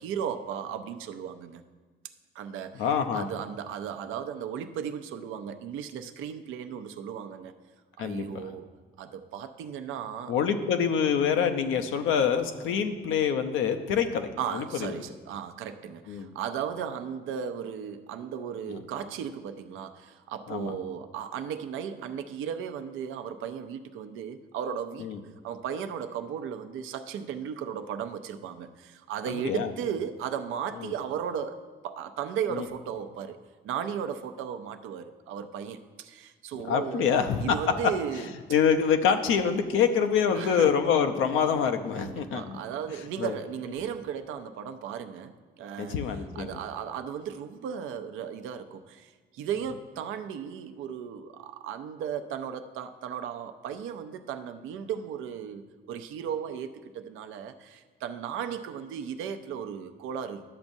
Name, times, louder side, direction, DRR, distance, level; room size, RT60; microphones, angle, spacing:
voice 1, 0.0-1.6 2.3-2.9 3.1-7.5 8.0-8.7 9.0-10.3 14.4-25.1 25.4-33.4 33.6-38.3 40.3-40.7 42.0-46.0 46.3-60.4, right 8 dB, 85° right, 8 dB, 0.6 m, -35 dB
voice 2, 2.7-3.3 8.0-8.4 10.3-14.9 16.1-16.3 20.5-20.7 25.0-25.2 29.3-29.7 30.8-30.9 32.5-32.7 36.7-37.6 38.5-42.6 43.2-43.3 45.8-46.6, left 7 dB, 85° left, 7 dB, 0.7 m, -26 dB
11.5 x 7.2 x 2.6 m, 1.4 s
cardioid pair, 90°, 20 cm